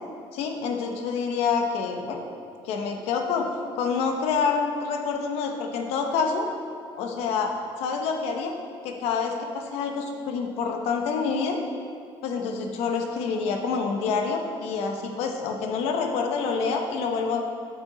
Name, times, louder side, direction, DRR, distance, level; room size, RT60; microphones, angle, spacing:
voice 1, 0.3-2.2 2.6-3.5 3.8-6.5 7.0-7.5 7.8-8.5 8.8-11.6 12.2-17.4, left 5 dB, 90° left, 3 dB, 0.8 m, -27 dB
7.9 x 5.1 x 3.8 m, 2.4 s
cardioid pair, 180°, 10 cm